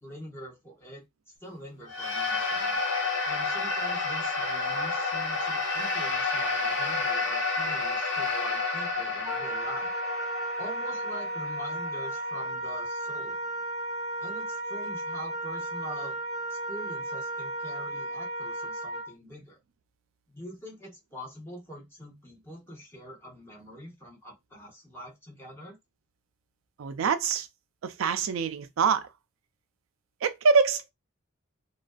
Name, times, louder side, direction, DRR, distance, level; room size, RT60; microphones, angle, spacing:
voice 1, 0.0-1.0 1.4-2.8 3.2-9.9 10.6-13.4 14.2-16.2 16.5-19.6 20.3-25.8, equal, 10° left, 0.9 m, -44 dB
sound 1, 1.9-12.4, left 3 dB, 60° left, 0.6 m, -30 dB
Wind instrument woodwind instrument, 9.2-19.1, right 1 dB, 15° right, 0.4 m, -34 dB
voice 2, 26.8-27.5 27.8-29.1 30.2-30.9, right 5 dB, 85° right, 0.4 m, -25 dB
2.5 x 2.2 x 2.3 m
head